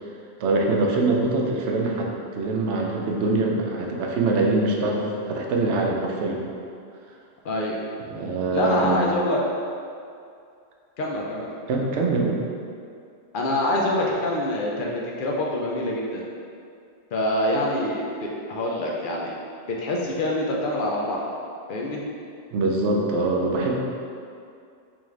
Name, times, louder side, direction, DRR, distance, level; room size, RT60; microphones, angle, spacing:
voice 1, 0.4-6.5 8.1-9.0 11.7-12.4 22.5-23.8, right 2 dB, 85° right, 0 dB, 0.9 m, -23 dB
voice 2, 7.4-7.8 8.5-9.4 11.0-11.5 13.3-16.2 17.1-19.3 19.7-21.4 21.7-22.0, left 1 dB, 60° left, -2 dB, 0.6 m, -25 dB
3.6 x 3.4 x 3.2 m, 2.4 s
omnidirectional pair, 1.2 m